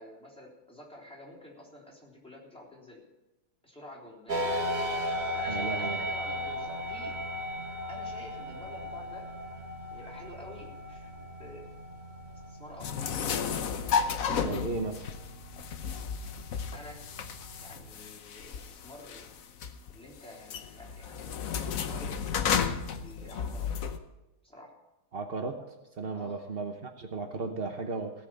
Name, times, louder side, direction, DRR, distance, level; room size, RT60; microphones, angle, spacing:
voice 1, 0.0-3.0 3.6-4.7 5.3-7.1 7.9-9.3 9.9-11.1 11.4-11.7 12.5-13.0 16.7-17.0 17.6-19.3 19.9-22.2 23.0-23.7 24.4-24.7 26.1-26.5, left 1 dB, ahead, -4 dB, 3.5 m, -48 dB
sound 1, 4.3-17.9, equal, 25° right, 1.1 m, -37 dB
voice 2, 5.5-6.0 14.3-15.0 25.1-25.6 26.0-28.1, right 4 dB, 75° right, 5 dB, 0.5 m, -35 dB
sound 2, 12.8-24.0, left 7 dB, 60° left, 0.9 m, -33 dB
17.0 x 6.3 x 8.9 m, 1.0 s
omnidirectional pair, 2.4 m